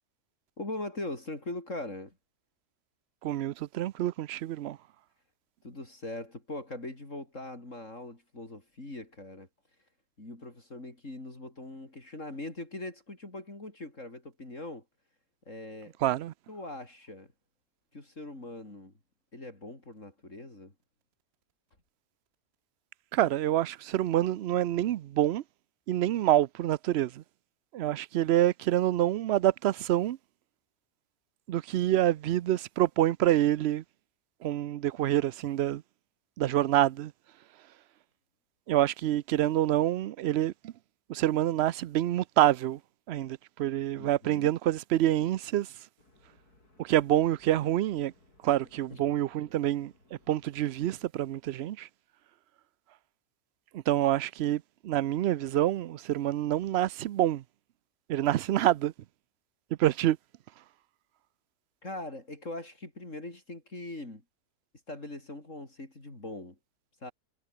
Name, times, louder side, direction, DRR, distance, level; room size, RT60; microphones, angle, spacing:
voice 1, 0.6-2.2 5.6-9.5 10.2-14.8 15.5-15.9 16.5-17.3 17.9-18.9 19.3-20.7 44.0-44.5 48.9-49.1 61.8-64.2 64.9-66.6 67.0-67.1, left 2 dB, 50° left, 5.8 m, -41 dB
voice 2, 3.2-4.8 16.0-16.3 23.1-25.4 25.9-27.1 27.7-30.2 31.5-33.8 34.4-35.8 36.4-37.1 38.7-40.7 41.1-42.8 43.1-45.7 46.8-48.1 48.4-49.9 50.3-51.9 53.9-57.4 58.1-58.9 59.8-60.2, right 13 dB, 70° right, 0.6 m, -27 dB
sound 1, 46.0-51.0, left 2 dB, 80° left, 7.7 m, -63 dB
omnidirectional pair, 1.6 m